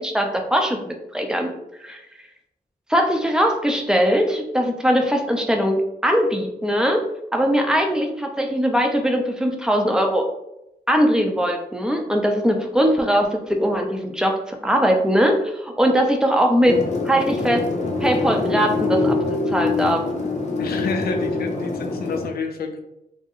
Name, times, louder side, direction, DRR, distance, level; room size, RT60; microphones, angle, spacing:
voice 1, 0.0-1.5 1.8-2.0 2.9-7.1 7.3-10.3 10.9-16.8 17.0-17.6 18.0-19.2 19.5-20.0, equal, 5° right, 3 dB, 0.5 m, -20 dB
sound 1, 16.6-22.3, left 3 dB, 50° left, 0.7 m, -24 dB
voice 2, 20.6-22.8, left 5 dB, 90° left, 5 dB, 0.4 m, -29 dB
2.7 x 2.0 x 3.6 m, 0.85 s
cardioid pair, 75°, 16 cm